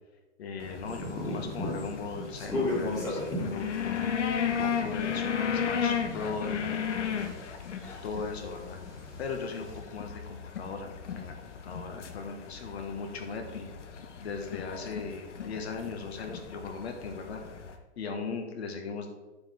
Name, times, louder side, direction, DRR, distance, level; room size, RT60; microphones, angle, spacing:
voice 1, 0.4-7.1 8.0-8.8 9.2-13.7 14.2-17.4 18.0-19.1, left 4 dB, 65° left, 4 dB, 1.6 m, -38 dB
sound 1, 0.6-17.8, left 7 dB, 90° left, 1.2 m, -35 dB
sound 2, 0.9-7.6 7.8-9.8, left 1 dB, 10° left, 1.9 m, -36 dB
9.5 x 7.0 x 3.5 m, 1.2 s
hypercardioid pair, 160°, 35 cm